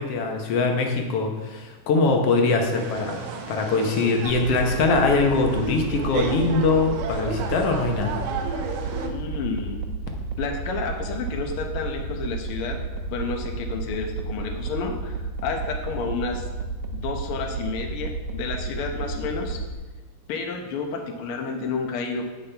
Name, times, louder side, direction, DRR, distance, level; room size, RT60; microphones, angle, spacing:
voice 1, 0.0-8.2, left 3 dB, 65° left, 2 dB, 1.6 m, -22 dB
sound 1, 2.7-9.1, right 5 dB, 90° right, 2.6 m, -33 dB
sound 2, 4.3-19.7, right 3 dB, 75° right, 1.9 m, -32 dB
voice 2, 9.0-9.8 10.4-12.8 13.1-15.2 15.4-16.5 16.9-19.6 20.3-22.3, left 4 dB, 85° left, 3 dB, 1.2 m, -30 dB
16.5 x 5.7 x 3.4 m, 1.2 s
omnidirectional pair, 3.7 m